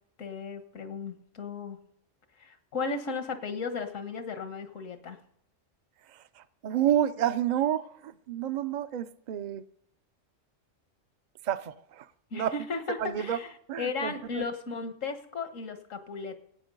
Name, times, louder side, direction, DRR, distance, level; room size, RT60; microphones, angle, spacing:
voice 1, 0.2-1.8 2.4-5.2 12.3-16.4, left 4 dB, 80° left, 1.7 m, -35 dB
voice 2, 6.1-9.6 11.4-12.6 13.0-13.4 13.7-14.5, right 10 dB, 50° right, 0.5 m, -30 dB
17.0 x 8.7 x 5.3 m
omnidirectional pair, 1.3 m